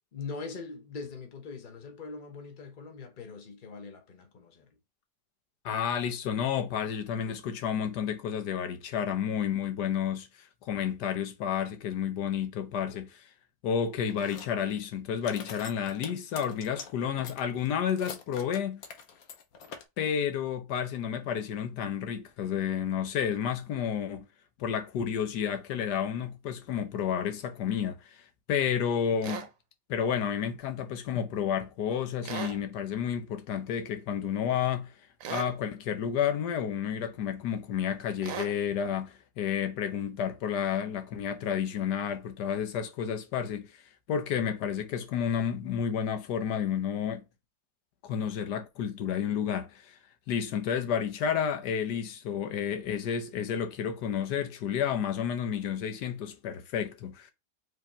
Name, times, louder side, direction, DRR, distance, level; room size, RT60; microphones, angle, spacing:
voice 1, 0.1-4.7, left 4 dB, 35° left, 1.0 m, -42 dB
voice 2, 5.6-10.3 10.6-13.3 13.6-18.8 20.0-24.3 24.6-29.5 29.9-34.9 35.3-43.8 44.1-47.2 48.0-50.0 50.3-57.3, left 8 dB, 90° left, 1.4 m, -31 dB
sound 1, 14.1-14.8 15.2-16.9 17.2-19.8, left 6 dB, 65° left, 1.2 m, -44 dB
sound 2, 29.2-29.5 32.2-32.6 35.2-35.5 38.2-38.5, right 8 dB, 65° right, 1.0 m, -37 dB
4.8 x 3.5 x 2.9 m
omnidirectional pair, 1.7 m